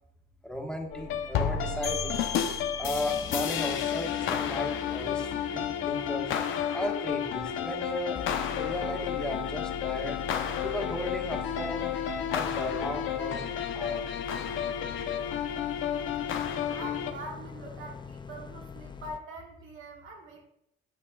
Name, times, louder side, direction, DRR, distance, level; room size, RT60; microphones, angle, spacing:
voice 1, 0.4-2.1 2.8-6.3 6.7-10.2 10.6-11.9 12.3-14.0, left 1 dB, 5° left, 1 dB, 1.4 m, -35 dB
sound 1, 0.9-17.1, left 8 dB, 85° left, 0.7 m, -31 dB
sound 2, 1.8-7.3, left 8 dB, 50° left, 2.0 m, -41 dB
sound 3, 2.8-7.8 8.2-19.2, left 7 dB, 25° left, 0.5 m, -44 dB
voice 2, 16.8-20.5, right 2 dB, 80° right, 1 dB, 1.5 m, -43 dB
8.6 x 7.4 x 2.4 m, 0.75 s
cardioid pair, 90°, 20 cm